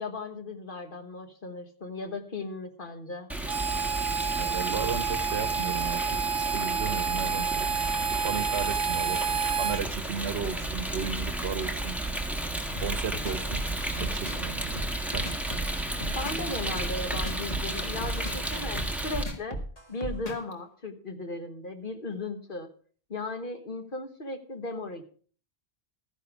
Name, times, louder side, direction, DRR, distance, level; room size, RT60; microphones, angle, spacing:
voice 1, 0.0-3.3 16.1-19.6 19.9-22.7 23.1-25.0, left 2 dB, 50° left, 7 dB, 1.5 m, -36 dB
Rain, 3.3-19.2, right 1 dB, ahead, 1.4 m, -33 dB
Harmonica, 3.5-9.8, right 6 dB, 35° right, 0.5 m, -29 dB
voice 2, 4.4-7.8 8.2-9.2 9.5-12.0 12.8-13.7 14.0-14.8 15.1-15.3, right 7 dB, 70° right, 16 dB, 1.0 m, -35 dB
Dubby Lasergun Loop, 12.8-20.5, equal, 35° left, 2.0 m, -35 dB
13.0 x 10.0 x 4.8 m, 0.43 s
omnidirectional pair, 1.1 m